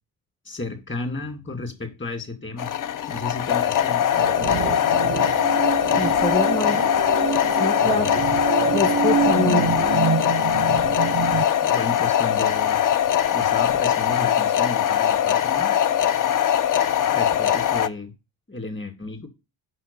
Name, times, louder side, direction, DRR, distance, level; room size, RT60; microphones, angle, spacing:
voice 1, 0.4-2.7 3.1-5.0 7.8-8.2 11.6-12.8 13.3-15.8 17.1-18.1 18.5-19.3, left 3 dB, 25° left, 2.3 m, -33 dB
sound 1, 2.6-17.9, left 10 dB, 45° left, 0.6 m, -21 dB
sound 2, 4.1-11.4, right 9 dB, 40° right, 0.4 m, -26 dB
voice 2, 5.9-6.9 7.5-8.2 8.7-9.7, left 2 dB, 10° left, 0.8 m, -25 dB
5.7 x 5.7 x 6.9 m
cardioid pair, 100°, 43 cm